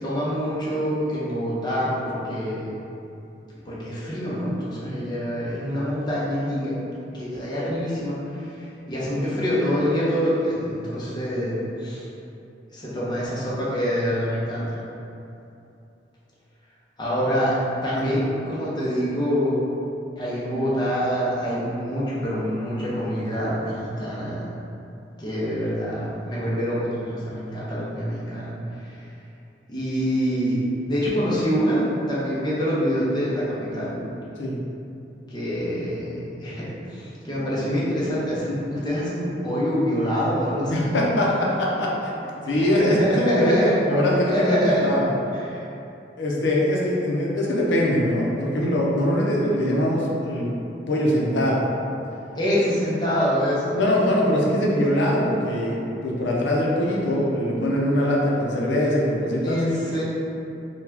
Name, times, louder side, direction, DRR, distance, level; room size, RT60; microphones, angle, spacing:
voice 1, 0.0-2.8 3.6-6.7 7.1-8.5 8.9-12.0 12.7-14.9 17.0-17.5 17.8-19.6 20.2-24.4 25.2-28.6 28.8-28.9 29.7-30.6 30.9-34.0 35.3-40.7 42.4-43.7 44.3-44.9 45.5-45.6 52.4-53.8 59.4-60.0, equal, 25° left, -8 dB, 0.8 m, -25 dB
voice 2, 40.7-42.1 42.4-45.1 46.2-50.5 50.9-51.6 53.8-59.6, left 1 dB, 85° left, -3 dB, 0.6 m, -22 dB
4.0 x 2.3 x 2.8 m, 2.8 s
head